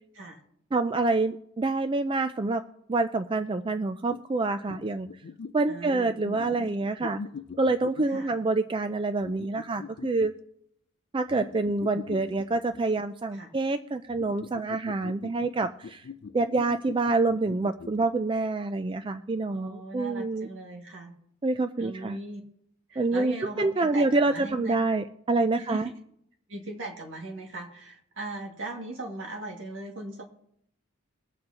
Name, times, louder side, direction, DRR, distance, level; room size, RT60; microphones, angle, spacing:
voice 1, 0.7-2.6 2.9-5.1 5.5-7.2 7.6-10.3 11.1-16.0 16.3-20.5 21.4-22.2 23.0-25.9, right 3 dB, 25° right, 9 dB, 0.3 m, -27 dB
sound 1, 4.1-4.2 4.7-5.6 6.2-8.4 9.2-10.3 11.3-13.0 14.1-18.1, left 5 dB, 55° left, 0.4 m, -42 dB
voice 2, 5.7-6.2 8.1-8.3 13.3-13.5 19.5-21.1 21.8-22.4 22.9-24.8 25.6-25.9 26.5-30.2, right 2 dB, 65° right, 0 dB, 2.1 m, -39 dB
22.5 x 7.6 x 2.9 m, 0.74 s
head